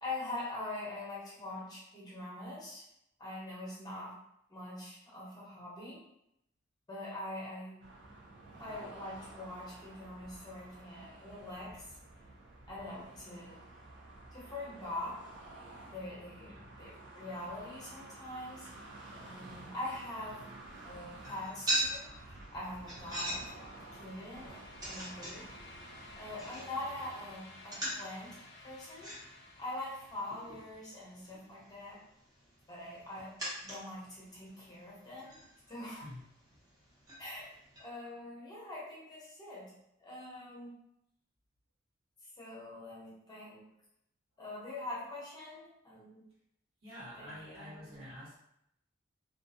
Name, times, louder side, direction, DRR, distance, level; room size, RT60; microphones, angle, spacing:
voice 1, 0.0-2.8 3.2-4.1 4.5-6.0 6.9-7.8 8.6-12.0 12.7-13.6 14.3-15.2 15.9-18.7 19.0-20.5 20.8-23.6 23.9-25.5 26.1-29.1 29.6-32.0 32.7-33.3 33.6-35.4 35.7-36.1 37.2-37.5 37.8-39.7 40.0-40.7 42.4-43.6 44.4-46.2 47.2-48.1, left 1 dB, 20° left, -6 dB, 0.8 m, -43 dB
sound 1, 7.8-27.4, right 2 dB, 65° right, 0.5 m, -52 dB
lifting something small sound effect, 21.1-37.8, right 1 dB, 20° right, 0.8 m, -43 dB
sound 2, 22.4-31.3, left 2 dB, 55° left, 0.4 m, -55 dB
voice 2, 46.8-48.3, equal, 85° right, -7 dB, 1.1 m, -48 dB
2.3 x 2.2 x 2.6 m, 0.78 s
head